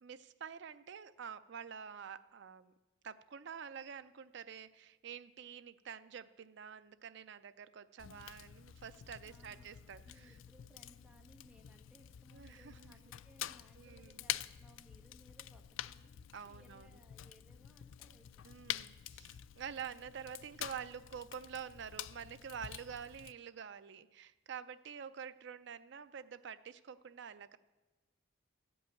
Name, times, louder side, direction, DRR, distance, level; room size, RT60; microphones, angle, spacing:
voice 1, 0.0-2.7 3.0-10.3 12.3-12.9 13.8-14.2 16.3-16.9 18.4-27.6, right 7 dB, 60° right, 13 dB, 0.4 m, -48 dB
Fire, 8.0-23.3, left 12 dB, 70° left, 0.3 m, -47 dB
voice 2, 9.2-9.7 10.0-16.1 16.4-18.5, equal, 5° right, 1 dB, 1.1 m, -64 dB
13.5 x 5.4 x 9.0 m, 1.2 s
head